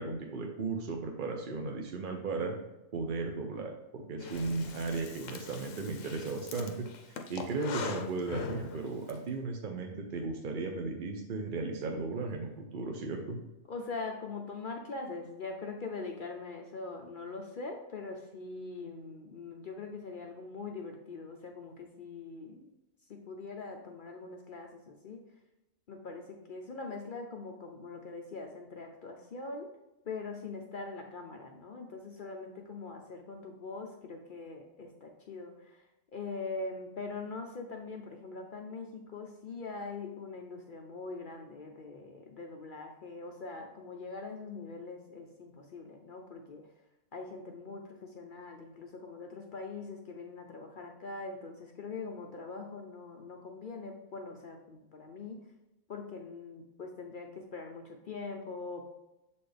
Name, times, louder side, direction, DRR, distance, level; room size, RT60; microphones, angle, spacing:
voice 1, 0.0-2.6 2.9-13.4, right 3 dB, 50° right, 2 dB, 0.6 m, -36 dB
Breathing, 4.2-9.2, left 5 dB, 75° left, 1.0 m, -42 dB
voice 2, 13.7-22.7 23.1-25.3 25.9-29.7 30.0-35.9 36.1-46.6 47.1-55.4 55.9-58.8, left 3 dB, 55° left, 2 dB, 0.6 m, -42 dB
7.0 x 4.3 x 3.3 m, 0.93 s
omnidirectional pair, 1.4 m